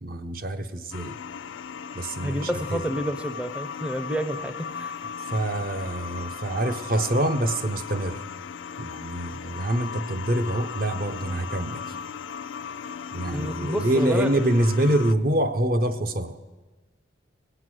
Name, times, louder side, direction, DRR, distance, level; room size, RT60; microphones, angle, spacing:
voice 1, 0.0-1.2 1.9-2.8 5.3-8.2 8.8-11.8 13.1-16.4, right 1 dB, 50° right, 9 dB, 0.7 m, -25 dB
sound 1, 0.9-15.1, left 6 dB, 85° left, 0.4 m, -37 dB
voice 2, 2.2-5.0 13.3-14.3, equal, 5° right, 9 dB, 0.5 m, -29 dB
18.0 x 7.9 x 6.2 m, 1.3 s
head